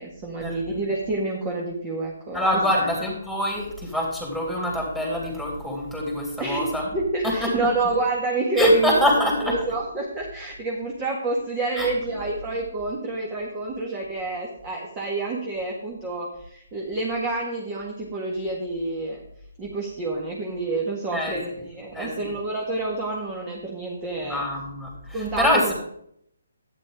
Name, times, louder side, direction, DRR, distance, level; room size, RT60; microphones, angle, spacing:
voice 1, 0.0-2.8 6.4-19.2 19.6-24.5 25.1-25.7, right 2 dB, 20° right, -2 dB, 1.8 m, -28 dB
voice 2, 2.3-6.9 7.2-7.7 8.6-9.5 11.8-11.9 21.1-21.4 21.9-22.1 24.3-25.7, left 1 dB, 5° right, -2 dB, 3.3 m, -24 dB
11.5 x 9.3 x 3.7 m, 0.69 s
hypercardioid pair, 155°, 0 cm